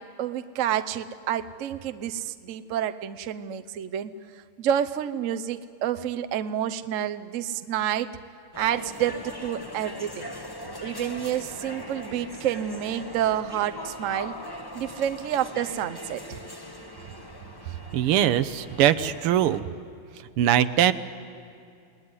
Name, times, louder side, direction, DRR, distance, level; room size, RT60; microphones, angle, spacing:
voice 1, 0.0-4.1 4.6-8.1 8.6-10.3 10.8-14.3 14.7-16.4, right 10 dB, 70° right, 10 dB, 0.7 m, -29 dB
sound 1, 8.5-19.6, left 1 dB, 15° left, 1.1 m, -40 dB
voice 2, 17.9-19.6 20.4-20.9, right 11 dB, 90° right, 13 dB, 1.8 m, -21 dB
29.0 x 19.0 x 9.7 m, 2.4 s
omnidirectional pair, 2.4 m